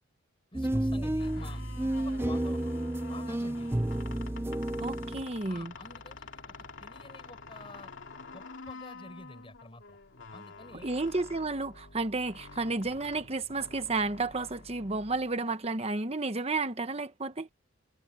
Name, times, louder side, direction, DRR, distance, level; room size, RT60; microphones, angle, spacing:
voice 1, 0.5-2.7 3.1-3.9 5.5-7.9 8.3-10.0 10.3-10.9, left 2 dB, 25° left, 6.0 m, -50 dB
sound 1, 0.5-5.3, right 1 dB, 10° right, 0.5 m, -31 dB
sound 2, 1.2-15.7, left 4 dB, 60° left, 3.2 m, -48 dB
voice 2, 4.8-5.7 10.8-17.5, right 3 dB, 30° right, 1.0 m, -32 dB
head